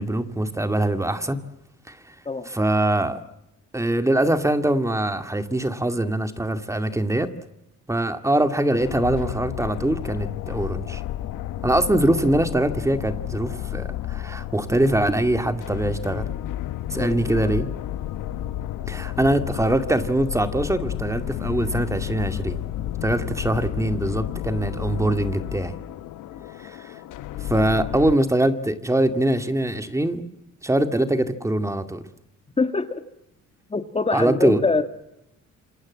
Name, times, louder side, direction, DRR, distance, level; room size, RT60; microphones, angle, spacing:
voice 1, 0.0-1.4 1.9-2.0 2.5-3.2 3.7-7.3 7.9-11.0 11.6-16.3 16.9-17.7 18.9-22.6 23.0-25.7 26.6-26.8 27.5-30.2 30.6-32.0 34.1-34.6, right 1 dB, 10° right, 9 dB, 2.2 m, -23 dB
sound 1, 8.8-28.2, left 13 dB, 85° left, 1.2 m, -31 dB
voice 2, 16.9-17.3 26.3-26.4 32.6-33.0 33.7-34.8, left 3 dB, 20° left, 8 dB, 1.7 m, -24 dB
27.5 x 27.0 x 7.5 m, 0.84 s
cardioid pair, 125°, 30 cm